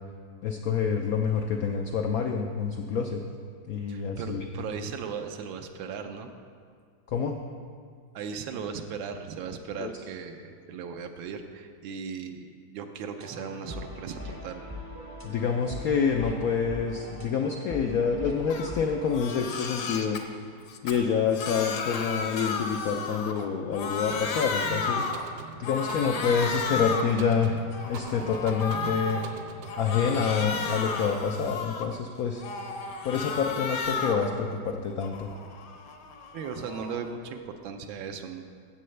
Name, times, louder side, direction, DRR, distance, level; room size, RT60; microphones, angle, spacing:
voice 1, 0.4-3.2 3.7-4.4 7.1-7.4 9.8-9.9 15.2-20.2 20.8-25.1 25.6-27.6 27.9-29.2 29.8-32.4 33.0-35.3, left 6 dB, 90° left, 3 dB, 0.8 m, -27 dB
voice 2, 3.9-6.3 8.1-14.7 32.9-33.0 36.3-38.4, right 6 dB, 85° right, 6 dB, 1.4 m, -37 dB
sound 1, 13.2-19.1, left 1 dB, 25° right, 0.5 m, -41 dB
Crying sobbing, 18.5-18.7 19.0-20.2 20.7-23.5 23.7-25.3 25.6-27.2 27.6-29.3 29.7-32.0 32.4-34.3 34.7-37.1, left 4 dB, 65° left, 1.3 m, -33 dB
sound 2, 24.1-29.9, right 4 dB, 65° right, 1.0 m, -42 dB
14.5 x 7.7 x 3.2 m, 2.1 s
omnidirectional pair, 2.1 m